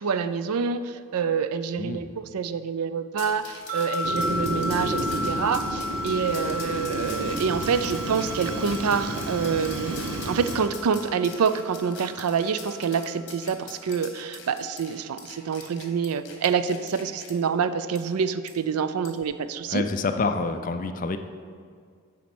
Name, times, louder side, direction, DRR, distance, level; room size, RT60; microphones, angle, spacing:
voice 1, 0.0-19.9, right 6 dB, 85° right, 12 dB, 0.4 m, -27 dB
voice 2, 1.8-2.1 19.7-21.2, left 3 dB, 35° left, 8 dB, 0.4 m, -27 dB
sound 1, 3.2-17.3 17.9-18.0 18.5-18.6 19.0-19.2, left 5 dB, 55° left, 1.2 m, -43 dB
sound 2, 3.7-13.0, left 1 dB, 35° right, 1.2 m, -34 dB
Fire, 4.0-10.7, right 1 dB, 70° right, 1.0 m, -32 dB
9.2 x 4.2 x 6.1 m, 2.1 s
head